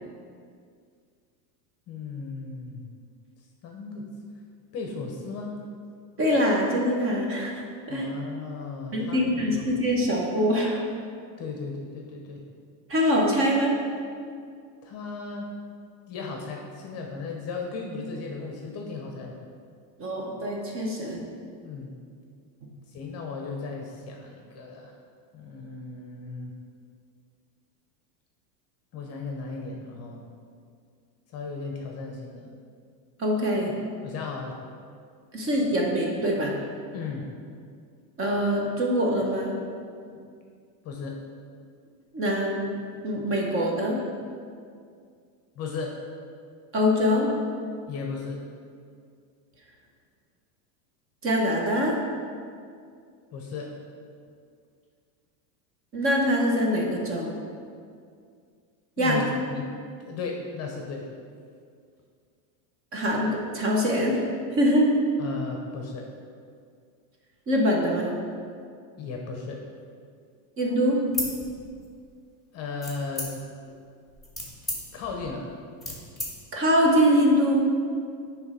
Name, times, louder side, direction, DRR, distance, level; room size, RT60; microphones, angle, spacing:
voice 1, 1.9-2.9 3.6-4.1 4.7-5.5 7.9-9.7 11.4-12.4 14.8-15.5 16.1-19.4 21.6-22.0 22.9-24.9 25.3-26.5 28.9-30.3 31.3-32.5 34.0-34.6 36.9-37.3 40.8-41.2 45.6-45.9 47.9-48.4 53.3-53.7 59.0-59.7 60.0-61.1 65.2-66.1 69.0-69.6 72.5-73.3 74.9-75.5, left 4 dB, 30° left, 1 dB, 0.8 m, -35 dB
voice 2, 6.2-7.6 7.9-8.1 8.9-10.8 12.9-13.8 20.0-21.2 33.2-33.7 35.3-36.5 38.2-39.6 42.1-42.7 43.0-44.0 46.7-47.3 51.2-52.0 55.9-57.4 59.0-59.2 62.9-64.2 64.5-64.9 67.5-68.2 70.6-71.0 76.5-77.6, equal, 25° right, -1 dB, 1.0 m, -23 dB
sound 1, 71.1-72.1 72.8-73.6 74.1-76.3, left 2 dB, ahead, 1.2 m, -34 dB
8.9 x 3.3 x 4.9 m, 2.2 s
supercardioid pair, 140°, 50 cm